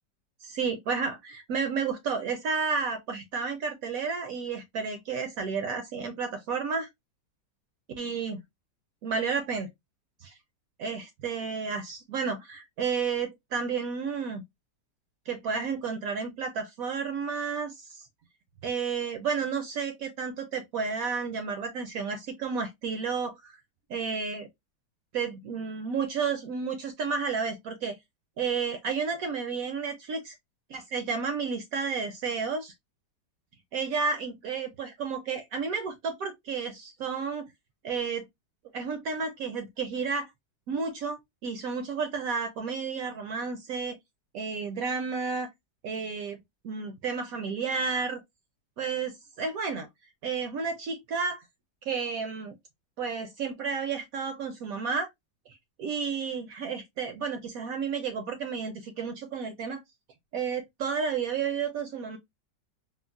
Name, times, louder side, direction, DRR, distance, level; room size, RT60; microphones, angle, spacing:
voice 1, 0.4-6.9 8.0-8.4 9.0-9.7 10.2-10.3 10.8-14.4 15.3-18.1 18.6-23.6 23.9-24.5 25.1-28.0 28.4-30.3 30.7-32.7 33.7-37.5 37.8-38.3 38.7-40.3 40.7-44.0 44.3-45.5 45.8-48.2 48.8-49.9 50.2-51.4 51.9-52.5 53.0-55.1 55.8-59.8 60.3-62.2, right 5 dB, 70° right, 0.8 m, -31 dB
3.7 x 2.1 x 2.2 m
omnidirectional pair, 1.9 m